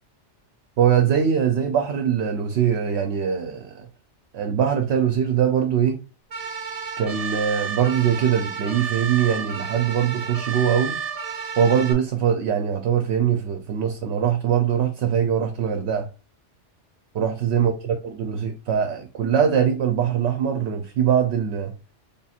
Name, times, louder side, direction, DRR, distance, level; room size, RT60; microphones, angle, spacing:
voice 1, 0.8-3.9 4.3-6.0 7.0-11.0 11.6-16.1 17.1-21.7, right 8 dB, 70° right, 0.8 m, -22 dB
sound 1, 6.3-11.9, right 6 dB, 40° right, 0.7 m, -31 dB
3.5 x 2.4 x 4.2 m
omnidirectional pair, 1.2 m